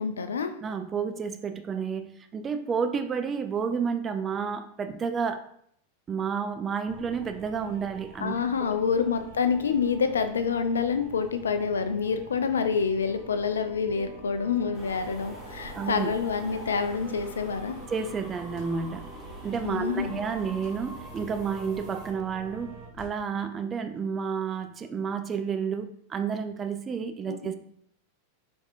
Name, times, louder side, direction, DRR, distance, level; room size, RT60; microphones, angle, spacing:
voice 1, 0.0-0.5 8.2-17.8 19.6-20.2 27.3-27.5, left 6 dB, 70° left, 0.4 m, -27 dB
voice 2, 0.6-5.5 6.1-8.4 15.7-16.1 17.9-19.1 19.4-27.5, right 6 dB, 20° right, 0.4 m, -31 dB
sound 1, 6.9-22.9, right 3 dB, 45° right, 1.6 m, -46 dB
sound 2, 14.7-22.1, equal, 5° left, 1.5 m, -44 dB
sound 3, 18.6-18.7 19.5-19.8 20.6-20.8 21.2-21.4 22.9-23.2, left 1 dB, 35° left, 1.4 m, -48 dB
4.7 x 3.5 x 2.6 m
figure-of-eight pair, 90°, 0 cm